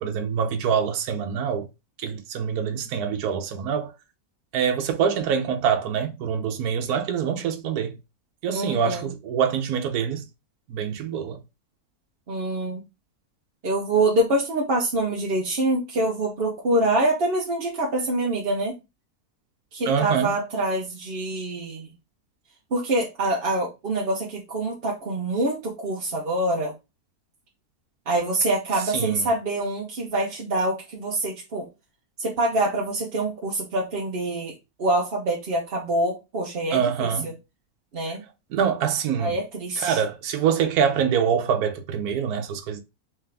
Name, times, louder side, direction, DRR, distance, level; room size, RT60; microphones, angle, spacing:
voice 1, 0.0-1.7 2.0-3.9 4.5-8.0 8.4-10.2 10.7-11.4 19.9-20.3 28.9-29.3 36.7-37.3 38.5-39.3 39.8-42.8, right 7 dB, 80° right, 1.2 m, -25 dB
voice 2, 8.5-9.1 12.3-12.8 13.6-18.7 19.7-21.9 22.7-26.7 28.1-31.7 32.2-34.5 34.8-37.3 37.9-38.2 39.2-40.0, right 1 dB, 45° right, 0.9 m, -25 dB
3.6 x 3.3 x 3.3 m
omnidirectional pair, 1.6 m